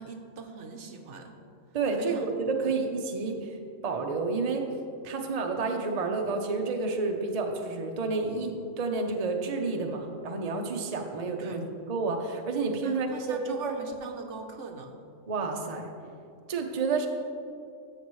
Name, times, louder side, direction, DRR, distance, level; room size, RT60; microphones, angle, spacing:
voice 1, 0.0-1.4 2.0-2.3 3.2-3.4 11.4-11.6 12.8-14.9, right 4 dB, 65° right, 5 dB, 1.0 m, -41 dB
voice 2, 1.7-3.6 3.8-4.6 5.0-11.6 11.9-13.7 15.3-15.9 16.5-17.1, right 4 dB, 35° right, 3 dB, 0.7 m, -30 dB
14.0 x 6.4 x 3.1 m, 2.5 s
omnidirectional pair, 1.4 m